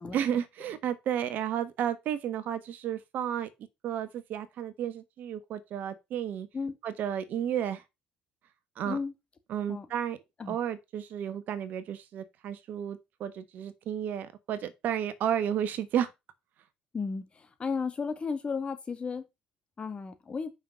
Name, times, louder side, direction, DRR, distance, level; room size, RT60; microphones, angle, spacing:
voice 1, 0.1-3.5 3.8-6.5 6.8-7.8 8.8-9.0 9.5-10.2 10.5-16.1, right 9 dB, 60° right, 1.2 m, -32 dB
voice 2, 16.9-19.2 19.8-20.5, left 5 dB, 35° left, 2.2 m, -34 dB
5.8 x 5.6 x 6.2 m
hypercardioid pair, 60°, 3 cm